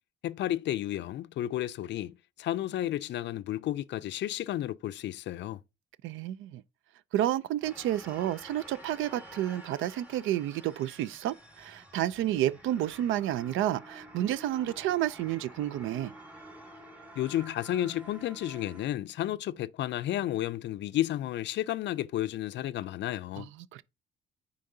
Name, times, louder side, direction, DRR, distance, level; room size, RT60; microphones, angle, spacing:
voice 1, 0.2-5.6 17.2-23.5, left 13 dB, 65° left, 0.4 m, -32 dB
voice 2, 6.0-6.6 7.1-16.1 23.4-23.8, right 12 dB, 85° right, 0.4 m, -30 dB
sound 1, 7.6-18.9, right 1 dB, 5° right, 1.7 m, -50 dB
9.3 x 3.8 x 2.7 m
cardioid pair, 90°, 20 cm